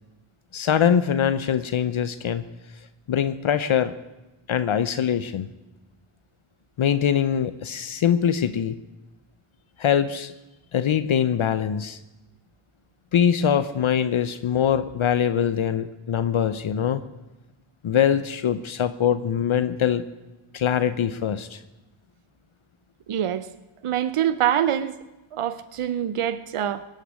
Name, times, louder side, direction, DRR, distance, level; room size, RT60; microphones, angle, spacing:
voice 1, 0.5-2.4 3.1-3.9 4.5-5.5 6.8-8.7 9.8-10.3 10.7-12.0 13.1-17.0 17.8-20.0 20.5-21.6, left 8 dB, 70° left, 12 dB, 0.8 m, -23 dB
voice 2, 23.1-23.5 23.8-24.9 25.3-26.9, right 10 dB, 85° right, 13 dB, 0.7 m, -25 dB
18.5 x 6.6 x 9.5 m, 1.0 s
cardioid pair, 50°, 50 cm